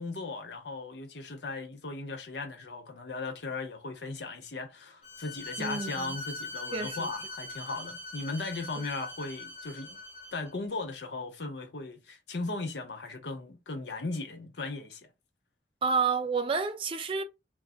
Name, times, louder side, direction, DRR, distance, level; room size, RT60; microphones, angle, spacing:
voice 1, 0.0-10.0 10.3-15.1, left 3 dB, 75° left, 0.7 m, -37 dB
Bowed string instrument, 5.0-10.5, left 2 dB, 35° left, 0.7 m, -41 dB
voice 2, 5.6-6.2 6.7-7.1 15.8-17.2, right 5 dB, 30° right, 0.3 m, -30 dB
2.3 x 2.1 x 3.5 m
head